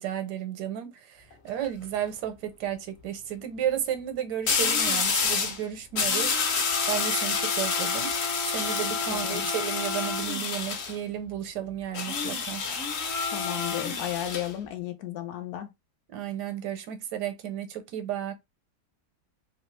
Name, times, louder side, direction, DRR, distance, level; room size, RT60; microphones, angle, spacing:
voice 1, 0.0-8.1 8.5-12.6 16.1-18.3, right 10 dB, 90° right, 1.3 m, -33 dB
sound 1, 1.3-1.6 4.5-5.6 5.9-10.9 11.9-14.5, left 5 dB, 55° left, 0.8 m, -28 dB
voice 2, 9.1-9.5 13.3-15.7, left 12 dB, 70° left, 1.1 m, -34 dB
3.0 x 2.6 x 3.1 m
omnidirectional pair, 1.7 m